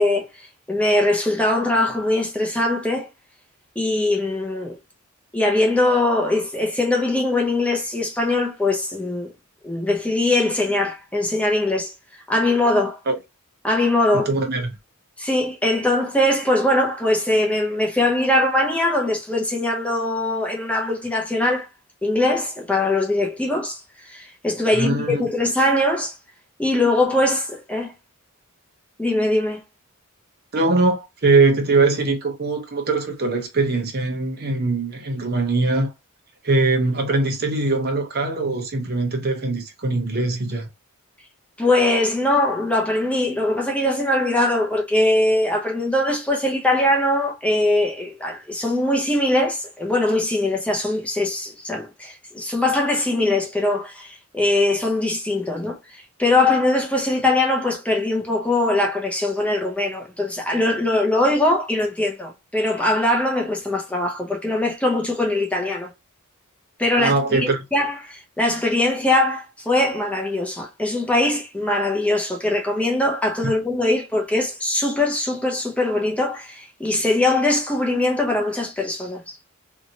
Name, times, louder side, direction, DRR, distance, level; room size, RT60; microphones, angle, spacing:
voice 1, 0.0-3.1 3.8-4.8 5.3-9.3 9.6-11.9 12.3-13.0 13.6-14.3 15.2-21.7 22.0-26.1 26.6-27.9 29.0-29.6 41.6-65.9 66.8-79.4, left 2 dB, 5° left, 0.6 m, -21 dB
voice 2, 14.3-14.7 24.7-25.3 30.5-35.9 36.4-40.7 66.9-67.6 73.4-73.5, right 3 dB, 45° right, 0.8 m, -21 dB
2.8 x 2.7 x 2.7 m
head